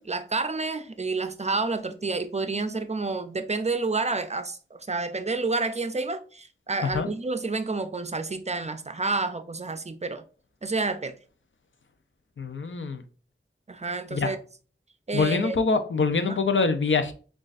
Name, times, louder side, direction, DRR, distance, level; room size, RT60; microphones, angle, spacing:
voice 1, 0.0-10.2 10.6-11.1 13.7-14.4 15.1-15.6 16.3-16.4, right 3 dB, 35° right, 0.4 m, -29 dB
voice 2, 12.4-13.0 14.1-14.4 15.1-17.1, left 4 dB, 75° left, 0.5 m, -24 dB
6.3 x 2.4 x 2.4 m
wide cardioid pair, 45°, 20 cm